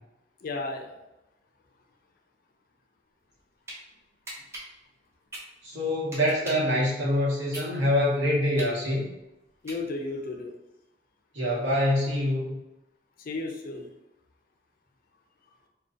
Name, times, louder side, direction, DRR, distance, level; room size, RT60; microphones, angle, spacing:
voice 1, 0.4-1.0 9.6-10.5 13.2-13.9, left 3 dB, 50° left, 2 dB, 0.4 m, -33 dB
sound 1, 3.2-3.8 4.2-6.7 7.1-10.2, right 1 dB, 15° right, 0.6 m, -42 dB
voice 2, 5.6-9.1 11.3-12.6, left 1 dB, 80° right, -6 dB, 0.9 m, -25 dB
2.5 x 2.2 x 2.4 m, 0.94 s
head